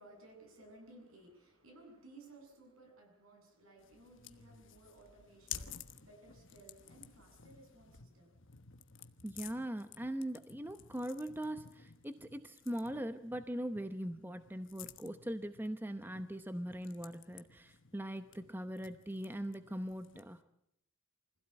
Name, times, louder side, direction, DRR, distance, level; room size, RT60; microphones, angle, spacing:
voice 1, 0.0-8.3, right 2 dB, 70° right, 3 dB, 7.7 m, -58 dB
sound 1, 3.8-20.4, left 9 dB, 60° left, 1.2 m, -53 dB
voice 2, 9.2-20.4, right 1 dB, 10° right, 9 dB, 0.8 m, -41 dB
25.0 x 16.5 x 8.9 m, 0.77 s
head